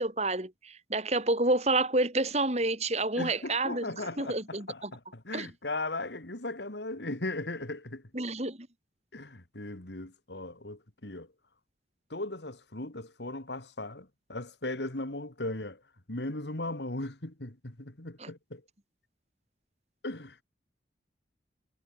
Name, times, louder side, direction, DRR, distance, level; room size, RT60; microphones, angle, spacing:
voice 1, 0.0-4.9 5.3-5.5 8.1-8.7 18.2-18.3, right 2 dB, 35° right, 3.6 m, -29 dB
voice 2, 3.2-8.0 9.1-11.3 12.1-15.8 16.1-18.6 20.0-20.4, left 2 dB, 75° left, 2.7 m, -37 dB
head